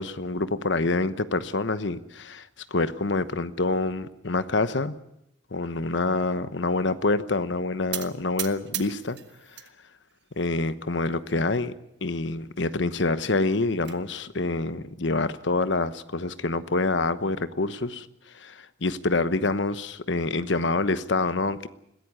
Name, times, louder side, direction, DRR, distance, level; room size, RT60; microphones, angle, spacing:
voice 1, 0.0-2.5 2.7-5.0 5.5-9.2 10.4-11.7 12.0-18.1 18.3-21.7, left 3 dB, 75° left, 13 dB, 1.1 m, -26 dB
sound 1, 7.9-9.7 10.1-10.7 11.3-11.4 11.7-11.8 12.1-12.2 13.3-14.0, right 13 dB, 65° right, 1.5 m, -37 dB
21.0 x 16.0 x 9.6 m, 0.83 s
head